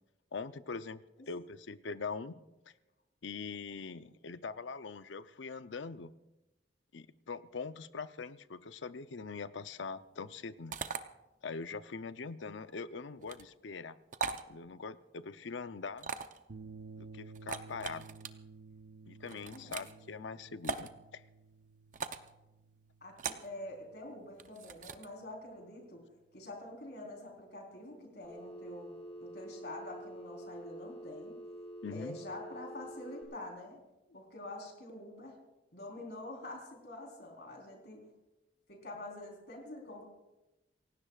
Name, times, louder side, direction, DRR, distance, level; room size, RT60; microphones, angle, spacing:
voice 1, 0.3-2.4 3.2-6.1 6.9-10.7 11.4-14.0 14.5-16.1 17.0-18.1 19.1-21.2 31.8-32.2, left 4 dB, 85° left, 13 dB, 0.6 m, -42 dB
sound 1, 10.7-11.0 13.2-13.4 14.1-14.4 16.0-16.4 17.3-18.3 19.3-19.9 20.6-20.9 21.9-22.3 23.2-23.5 24.4-25.1, right 5 dB, 40° right, 0.7 m, -39 dB
sound 2, 16.5-25.0, right 4 dB, 80° right, 0.8 m, -54 dB
voice 2, 19.5-19.9 23.0-26.0 26.3-28.9 29.2-31.3 31.9-33.8 34.1-35.4 35.7-38.1 38.7-40.0, left 1 dB, 60° left, 1 dB, 4.0 m, -46 dB
Telephone, 28.2-33.2, right 1 dB, 10° left, 6.4 m, -47 dB
28.5 x 16.5 x 2.4 m, 0.97 s
head